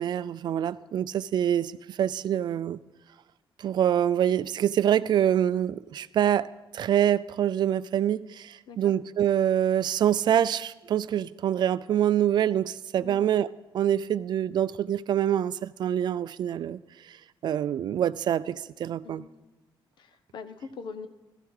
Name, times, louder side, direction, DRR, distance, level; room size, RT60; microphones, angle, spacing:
voice 1, 0.0-2.8 3.6-6.5 6.7-13.5 13.7-17.2 17.4-19.2, right 10 dB, 55° right, 16 dB, 0.4 m, -25 dB
voice 2, 20.0-21.1, left 5 dB, 60° left, 11 dB, 1.1 m, -42 dB
16.0 x 14.5 x 4.8 m, 1.1 s
wide cardioid pair, 175°, 9 cm